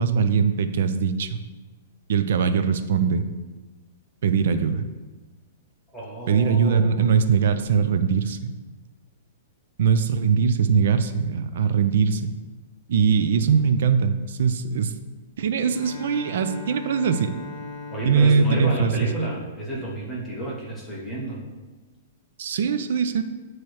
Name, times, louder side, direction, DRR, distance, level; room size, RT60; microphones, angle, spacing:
voice 1, 0.0-1.4 2.1-3.2 4.2-4.8 6.3-8.6 9.8-12.3 12.9-14.9 15.4-17.3 18.1-18.9 22.4-23.2, right 6 dB, 60° right, 10 dB, 0.4 m, -21 dB
voice 2, 5.9-7.2 17.9-21.4, right 1 dB, 5° left, -6 dB, 1.1 m, -31 dB
Bowed string instrument, 15.7-20.0, left 4 dB, 55° left, 1.1 m, -40 dB
8.4 x 3.1 x 4.6 m, 1.3 s
hypercardioid pair, 175°, 0 cm